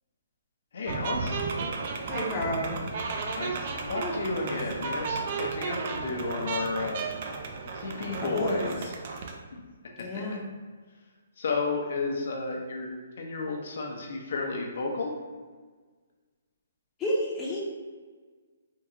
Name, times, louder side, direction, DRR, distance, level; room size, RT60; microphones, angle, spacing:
voice 1, 0.7-1.4 3.3-7.0 7.7-8.9 11.4-12.9 13.2-15.2, left 3 dB, 65° left, 0 dB, 0.6 m, -32 dB
sound 1, 0.8-9.4, right 4 dB, 45° right, 0.4 m, -33 dB
voice 2, 2.1-2.8 4.0-4.1 4.4-4.5 8.2-8.7 10.0-10.5 17.0-17.6, left 1 dB, 15° left, -5 dB, 0.6 m, -31 dB
3.6 x 2.3 x 2.8 m, 1.5 s
hypercardioid pair, 155°, 0 cm